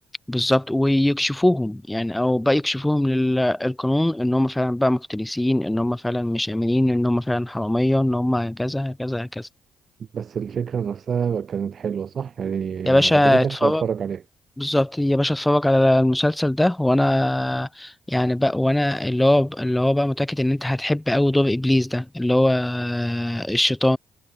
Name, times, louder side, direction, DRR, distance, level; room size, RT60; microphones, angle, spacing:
voice 1, 0.3-9.5 12.9-13.8 14.6-24.0, left 1 dB, 10° left, 0.5 m, -21 dB
voice 2, 10.1-14.2, right 7 dB, 50° right, 0.3 m, -27 dB
cardioid pair, 90°, 0 cm